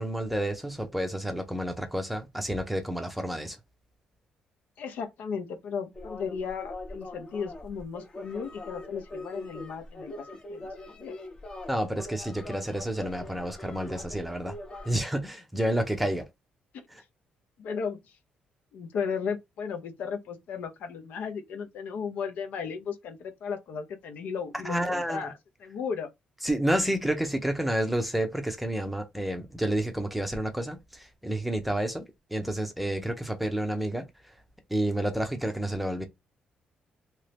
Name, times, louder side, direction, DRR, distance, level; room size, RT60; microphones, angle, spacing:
voice 1, 0.0-3.6 11.7-14.6 14.8-16.3 16.9-17.0 24.6-25.3 26.4-32.1 32.3-34.1 34.7-36.1, right 1 dB, 5° right, 0.6 m, -30 dB
voice 2, 4.8-11.2 16.7-16.9 17.6-18.0 18.7-25.3 25.6-26.1, left 6 dB, 75° left, 0.7 m, -35 dB
sound 1, 5.9-14.9, left 1 dB, 30° left, 0.8 m, -42 dB
2.9 x 2.6 x 3.4 m
cardioid pair, 145°, 3 cm